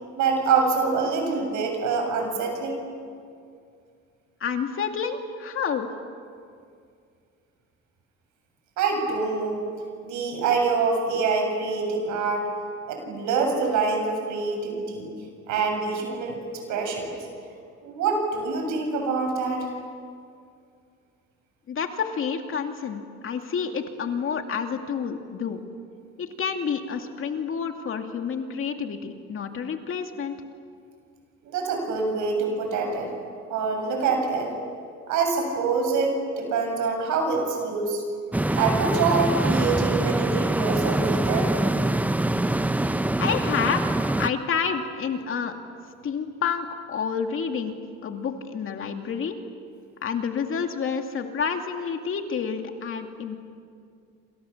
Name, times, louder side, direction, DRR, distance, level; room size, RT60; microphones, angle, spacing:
voice 1, 0.1-2.8 8.8-9.6 10.0-12.5 12.9-15.1 15.5-16.4 16.7-17.1 17.8-19.7 31.4-33.1 33.5-34.5 35.1-38.0 38.5-41.5, right 4 dB, 85° right, 3 dB, 7.6 m, -25 dB
voice 2, 4.4-5.9 21.7-25.6 26.2-30.4 43.2-43.9 44.2-45.5 46.0-47.8 48.0-49.4 50.0-53.4, left 6 dB, 45° left, 5 dB, 2.4 m, -29 dB
sound 1, 38.3-44.3, right 1 dB, 5° right, 0.6 m, -24 dB
28.0 x 27.5 x 7.3 m, 2.3 s
cardioid pair, 135°, 29 cm